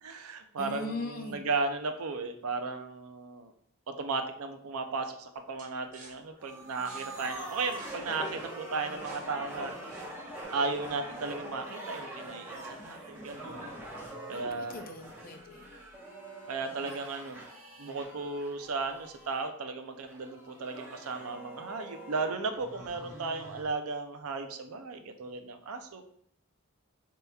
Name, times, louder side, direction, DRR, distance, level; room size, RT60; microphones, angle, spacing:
voice 1, 0.0-3.5 3.9-9.7 10.5-13.7 14.3-14.8 16.5-17.4 17.8-26.0, right 3 dB, 85° right, 7 dB, 0.5 m, -35 dB
voice 2, 0.6-1.5 14.3-15.7, left 2 dB, 40° left, 6 dB, 0.4 m, -40 dB
sound 1, 5.6-10.4, right 3 dB, 35° right, 0.7 m, -54 dB
sound 2, 6.4-19.5 20.1-23.6, right 1 dB, 10° right, 1.0 m, -44 dB
6.6 x 2.9 x 2.3 m, 0.67 s
head